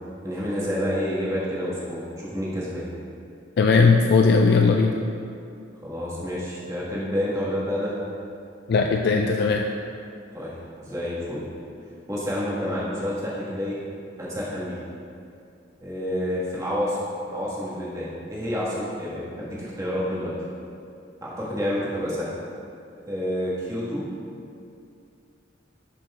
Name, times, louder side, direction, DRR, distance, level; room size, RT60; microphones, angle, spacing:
voice 1, 0.2-2.8 5.8-7.9 10.3-10.5 10.8-11.4 12.1-13.8 14.2-14.8 15.8-17.0 17.3-20.3 21.2-22.3 23.1-24.1, equal, 15° right, -8 dB, 1.7 m, -29 dB
voice 2, 3.6-4.9 8.7-9.6, left 4 dB, 55° left, 3 dB, 0.3 m, -18 dB
11.0 x 5.9 x 2.4 m, 2.5 s
head